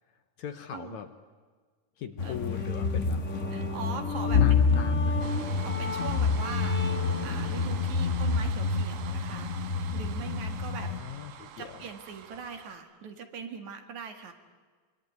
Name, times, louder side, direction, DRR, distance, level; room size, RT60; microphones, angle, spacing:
voice 1, 0.4-1.1 2.0-3.2 4.4-5.4 10.8-11.9, left 8 dB, 65° left, 9 dB, 2.2 m, -40 dB
sound 1, 2.2-11.0, left 5 dB, 85° left, 0.6 m, -28 dB
sound 2, 2.3-7.3, left 3 dB, 5° left, 0.8 m, -37 dB
voice 2, 3.5-5.3 5.6-6.8 7.2-10.9 11.6-14.3, right 6 dB, 60° right, 6 dB, 3.1 m, -41 dB
sound 3, 5.2-12.8, right 9 dB, 85° right, 3.1 m, -45 dB
26.0 x 23.0 x 9.5 m, 1.5 s
omnidirectional pair, 4.1 m